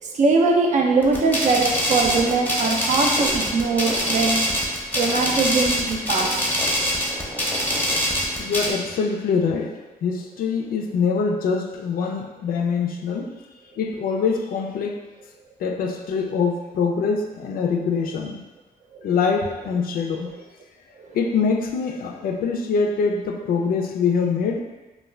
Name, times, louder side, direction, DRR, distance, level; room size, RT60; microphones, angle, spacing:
voice 1, 0.0-4.4 4.9-6.3 18.9-19.1 21.0-21.1, right 3 dB, 50° right, 1 dB, 0.5 m, -21 dB
sound 1, 1.0-8.7, equal, 10° left, 0.6 m, -24 dB
voice 2, 8.4-13.4 13.8-15.0 15.6-18.4 19.0-20.3 21.1-24.6, left 5 dB, 70° left, 3 dB, 0.4 m, -24 dB
2.3 x 2.2 x 3.2 m, 1.2 s
cardioid pair, 100°, 16 cm